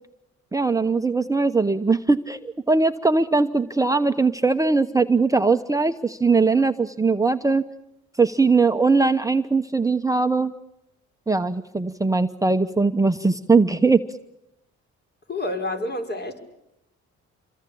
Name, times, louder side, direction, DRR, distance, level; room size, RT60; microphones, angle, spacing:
voice 1, 0.5-7.6 8.1-10.5 11.3-14.0, right 4 dB, 10° right, 7 dB, 0.9 m, -20 dB
voice 2, 15.3-16.4, left 1 dB, 35° left, 5 dB, 5.3 m, -28 dB
27.5 x 23.0 x 8.7 m, 0.84 s
cardioid pair, 90°, 30 cm